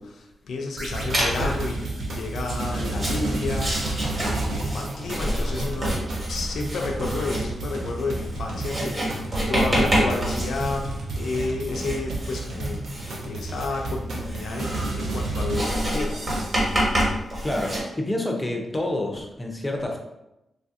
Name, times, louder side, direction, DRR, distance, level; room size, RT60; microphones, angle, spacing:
voice 1, 0.0-3.9 4.2-16.2, left 3 dB, 80° left, 2 dB, 0.4 m, -31 dB
sound 1, 0.8-2.7 4.2-6.0, right 1 dB, 60° right, 0.9 m, -39 dB
sound 2, 0.9-16.8, right 2 dB, 90° right, 0.6 m, -32 dB
Writing, 1.1-1.7 2.4-17.8, right 1 dB, 30° right, 1.1 m, -28 dB
voice 2, 17.4-20.0, left 1 dB, 15° left, 1 dB, 0.4 m, -28 dB
3.2 x 2.5 x 2.5 m, 0.91 s
wide cardioid pair, 150°, 0 cm